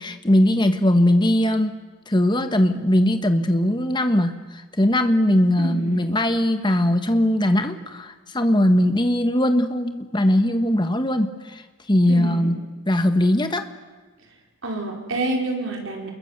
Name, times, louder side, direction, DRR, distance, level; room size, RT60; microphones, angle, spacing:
voice 1, 0.0-1.8 2.1-4.3 4.8-11.6 11.9-12.6 12.9-13.6, left 1 dB, 20° left, 8 dB, 1.4 m, -20 dB
voice 2, 5.6-6.0 12.1-12.5 14.6-16.1, right 2 dB, 65° right, 1 dB, 5.0 m, -28 dB
27.5 x 22.0 x 8.2 m, 1.4 s
head